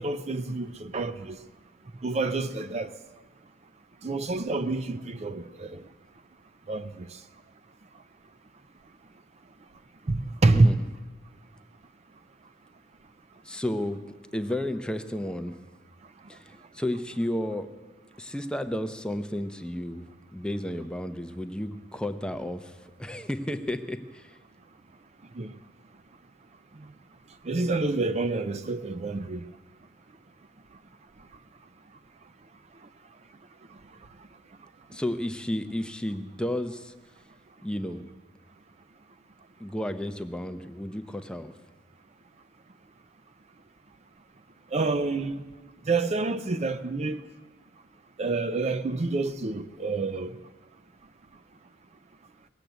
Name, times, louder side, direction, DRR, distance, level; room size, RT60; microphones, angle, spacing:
voice 1, 0.0-1.4 2.0-3.0 4.0-5.9 6.7-7.2 10.1-10.8 25.3-25.5 26.7-26.9 27.4-29.4 33.7-33.8 44.7-45.4 45.8-47.3 48.2-50.4, right 3 dB, 35° right, 0.5 m, -27 dB
voice 2, 10.5-10.9 13.4-14.0 14.3-15.5 16.3-17.7 18.2-24.4 34.9-36.9 37.6-38.1 39.6-41.5, left 1 dB, 5° left, 0.6 m, -32 dB
18.5 x 7.5 x 8.0 m
head